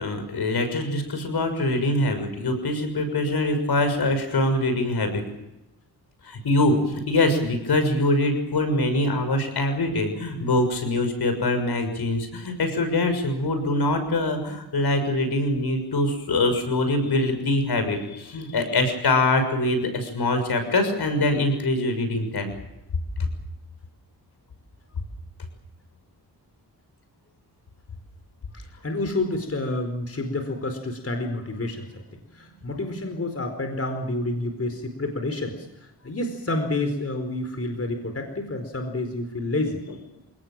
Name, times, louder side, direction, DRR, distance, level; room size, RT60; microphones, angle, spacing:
voice 1, 0.0-5.2 6.2-22.5, left 2 dB, 70° left, 7 dB, 6.6 m, -24 dB
voice 2, 28.5-32.0 32.3-39.8, left 2 dB, 35° left, 6 dB, 4.7 m, -29 dB
28.5 x 18.5 x 7.7 m, 0.90 s
cardioid pair, 80°, 40 cm